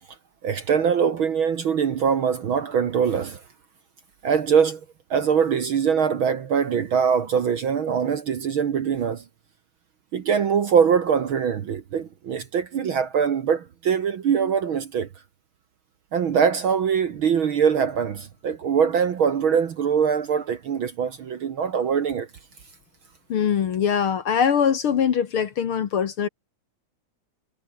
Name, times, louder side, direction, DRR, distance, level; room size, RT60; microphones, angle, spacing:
voice 1, 0.4-3.4 4.2-4.8 5.1-9.2 10.1-15.1 16.1-22.3, right 7 dB, 55° right, 1.7 m, -22 dB
voice 2, 23.3-26.3, left 7 dB, 55° left, 1.9 m, -22 dB
omnidirectional pair, 3.4 m